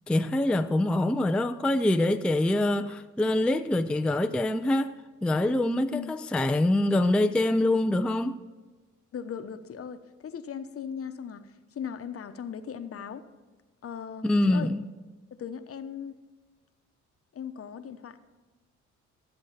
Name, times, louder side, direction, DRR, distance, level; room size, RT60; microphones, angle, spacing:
voice 1, 0.1-8.4 14.2-14.8, left 1 dB, 5° left, 0.4 m, -25 dB
voice 2, 9.1-11.5 11.7-13.2 13.8-14.7 15.3-16.1 17.3-18.2, left 7 dB, 50° left, 0.9 m, -38 dB
13.5 x 7.8 x 5.8 m
cardioid pair, 90°, 30 cm